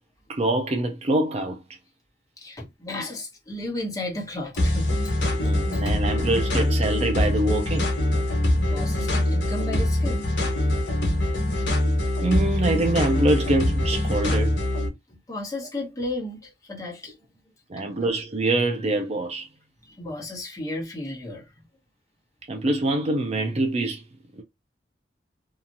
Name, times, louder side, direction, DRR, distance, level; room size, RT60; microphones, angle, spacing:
voice 1, 0.3-1.6 5.4-7.9 12.2-14.6 17.7-19.5 22.5-24.0 24.4-24.5, right 2 dB, 35° right, 0.5 m, -25 dB
voice 2, 2.4-5.1 5.7-5.8 8.6-10.5 11.0-11.2 15.1-17.1 17.8-17.9 19.8-21.6, left 1 dB, 20° left, 1.1 m, -34 dB
sound 1, 4.6-14.9, left 1 dB, 90° left, 1.1 m, -23 dB
2.8 x 2.4 x 2.6 m
head